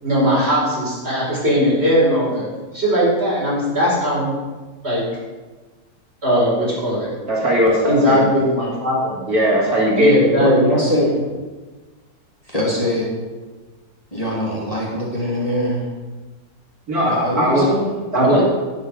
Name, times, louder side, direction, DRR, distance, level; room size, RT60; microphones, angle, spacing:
voice 1, 0.0-2.5 2.7-4.3 4.8-5.0 6.2-7.1 7.8-9.2 10.0-10.5 18.1-18.4, equal, 40° right, -6 dB, 5.0 m, -18 dB
voice 2, 7.3-8.2 9.3-10.1 16.9-17.7 18.1-18.4, equal, 65° right, -4 dB, 2.9 m, -18 dB
voice 3, 10.4-11.1 12.5-13.1 14.1-15.8 17.0-17.9, equal, 20° left, -5 dB, 2.5 m, -21 dB
11.5 x 9.6 x 5.0 m, 1.3 s
omnidirectional pair, 1.7 m